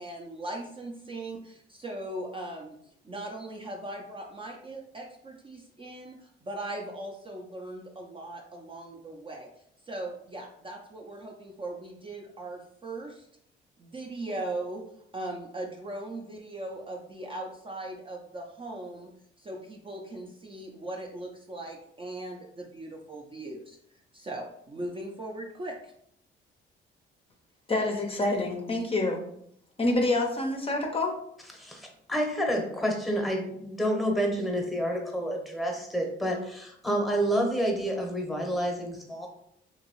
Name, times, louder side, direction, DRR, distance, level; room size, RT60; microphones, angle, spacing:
voice 1, 0.0-2.8 3.0-9.5 9.9-13.3 13.8-14.8 15.1-19.1 19.4-23.8 24.1-25.9, right 2 dB, 25° right, 0 dB, 0.4 m, -39 dB
voice 2, 27.7-29.2 29.8-31.2, left 2 dB, 30° left, 2 dB, 0.5 m, -27 dB
voice 3, 31.6-39.3, equal, ahead, 1 dB, 0.8 m, -29 dB
2.9 x 2.7 x 2.9 m, 0.71 s
cardioid pair, 90°, 20 cm